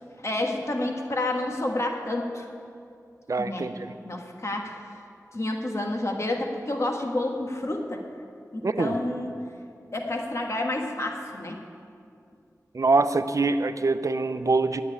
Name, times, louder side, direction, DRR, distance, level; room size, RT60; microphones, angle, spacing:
voice 1, 0.2-2.5 3.4-3.7 4.0-4.8 5.3-8.0 8.5-9.3 9.9-11.6, left 1 dB, 50° left, 2 dB, 1.5 m, -29 dB
voice 2, 3.3-3.9 8.6-9.0 12.7-14.8, right 3 dB, 60° right, 10 dB, 0.6 m, -24 dB
10.5 x 9.1 x 9.7 m, 2.4 s
wide cardioid pair, 70°, 6 cm